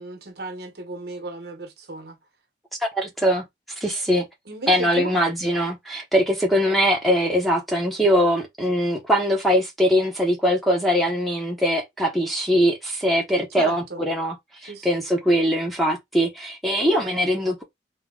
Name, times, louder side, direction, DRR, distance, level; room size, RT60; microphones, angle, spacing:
voice 1, 0.0-2.2 4.5-5.1 13.6-14.0 14.7-15.0, right 2 dB, 65° right, 1.0 m, -35 dB
voice 2, 2.9-3.4 3.8-4.3 4.7-14.3 14.6-17.6, equal, ahead, 1.0 m, -21 dB
3.8 x 2.9 x 3.6 m
head